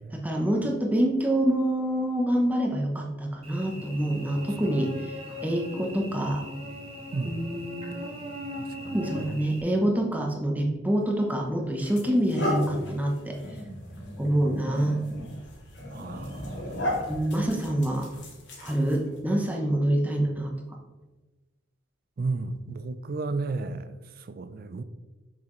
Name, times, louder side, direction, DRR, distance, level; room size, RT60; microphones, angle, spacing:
voice 1, 0.1-5.1 5.4-6.4 7.2-7.9 8.9-13.4 14.2-15.0 17.1-18.1 18.6-20.8, right 1 dB, 10° right, 0.8 m, -26 dB
Cricket / Buzz, 3.4-9.6, left 1 dB, 30° right, 1.4 m, -39 dB
voice 2, 4.4-4.8 7.1-7.4 8.6-9.4 15.9-17.0 22.2-24.8, right 3 dB, 45° right, 0.4 m, -34 dB
sound 1, 11.0-11.2 11.8-19.2, left 1 dB, 55° left, 1.7 m, -35 dB
6.6 x 6.1 x 3.1 m
head